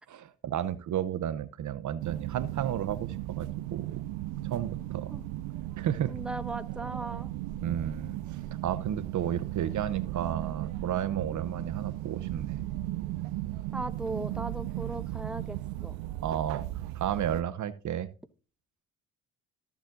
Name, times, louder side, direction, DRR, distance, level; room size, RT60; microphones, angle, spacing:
voice 1, 0.1-3.9 4.5-5.1 5.8-6.1 7.6-12.6 16.2-16.7 16.9-18.1, right 10 dB, 55° right, 0.8 m, -32 dB
sound 1, 2.0-17.4, right 15 dB, 85° right, 0.5 m, -36 dB
voice 2, 6.1-7.3 13.7-15.6 15.8-15.9, right 2 dB, 5° right, 0.8 m, -37 dB
14.0 x 7.2 x 2.6 m
supercardioid pair, 60°, 36 cm